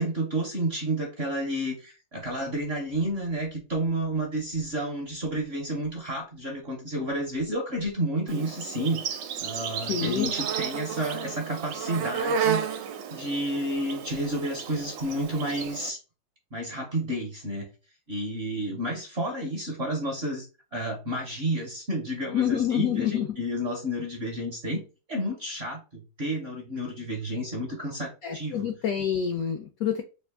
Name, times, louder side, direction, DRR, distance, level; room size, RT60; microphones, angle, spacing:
voice 1, 0.0-16.0 16.5-17.7 18.1-20.5 20.7-24.8 25.1-28.7, right 1 dB, 50° right, 1 dB, 0.7 m, -31 dB
Insect, 8.3-15.9, right 7 dB, 80° right, 1.2 m, -32 dB
voice 2, 9.9-10.3 22.3-23.2 28.2-30.0, left 9 dB, 80° left, 6 dB, 0.8 m, -27 dB
3.3 x 2.5 x 3.5 m, 0.31 s
omnidirectional pair, 2.0 m